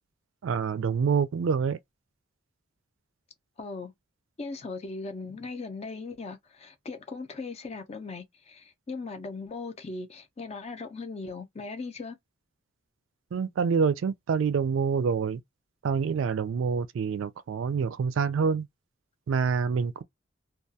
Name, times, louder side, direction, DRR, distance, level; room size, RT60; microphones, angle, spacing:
voice 1, 0.4-1.8 13.3-15.4 15.8-18.7 19.3-20.0, right 6 dB, 75° right, 0.3 m, -26 dB
voice 2, 3.6-3.9 4.4-12.2, left 3 dB, 30° left, 0.4 m, -38 dB
2.3 x 2.3 x 2.6 m
head